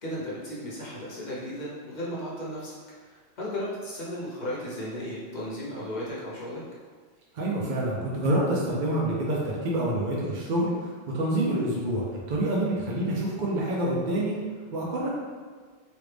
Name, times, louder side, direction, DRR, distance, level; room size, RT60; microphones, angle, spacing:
voice 1, 0.0-2.7 3.0-6.6, equal, 45° left, -6 dB, 0.9 m, -35 dB
voice 2, 7.3-14.4 14.7-15.1, right 1 dB, 55° right, -4 dB, 0.6 m, -27 dB
3.1 x 2.5 x 3.3 m, 1.5 s
omnidirectional pair, 1.1 m